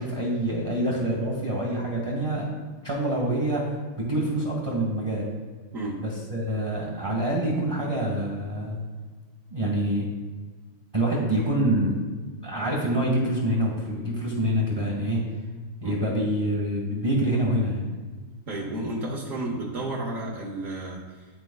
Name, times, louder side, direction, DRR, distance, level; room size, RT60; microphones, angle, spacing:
voice 1, 0.0-2.5 2.8-5.3 6.0-8.8 9.5-10.1 10.9-12.0 12.4-15.2 15.8-17.8, right 1 dB, 15° right, -3 dB, 0.9 m, -26 dB
voice 2, 18.5-21.3, right 1 dB, 70° right, -3 dB, 0.8 m, -32 dB
11.5 x 4.4 x 2.3 m, 1.4 s
omnidirectional pair, 2.4 m